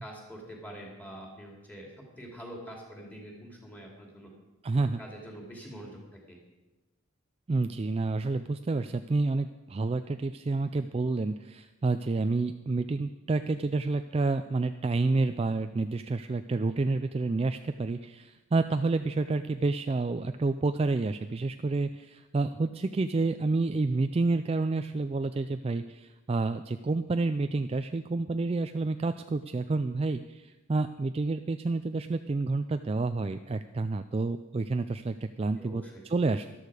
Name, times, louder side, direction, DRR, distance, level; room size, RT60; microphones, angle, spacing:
voice 1, 0.0-4.3 4.8-6.0 6.3-6.4 35.6-36.0, equal, 5° left, -1 dB, 2.8 m, -45 dB
voice 2, 4.6-5.0 7.5-36.5, right 3 dB, 30° right, 9 dB, 0.3 m, -29 dB
13.0 x 12.5 x 4.9 m, 1.1 s
head